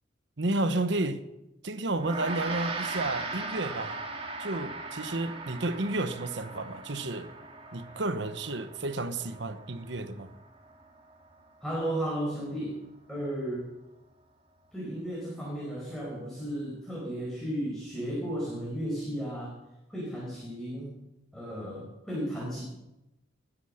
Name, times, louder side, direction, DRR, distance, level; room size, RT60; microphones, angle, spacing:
voice 1, 0.4-1.2 1.6-4.0 4.4-7.3 7.7-10.3, right 2 dB, 70° right, 1.1 m, -31 dB
Gong, 1.9-11.6, right 3 dB, 30° right, 2.1 m, -39 dB
voice 2, 11.6-12.7 13.1-13.7 14.7-19.5 19.9-20.9 21.3-22.6, right 1 dB, 5° left, 5.1 m, -34 dB
20.5 x 10.0 x 6.6 m
head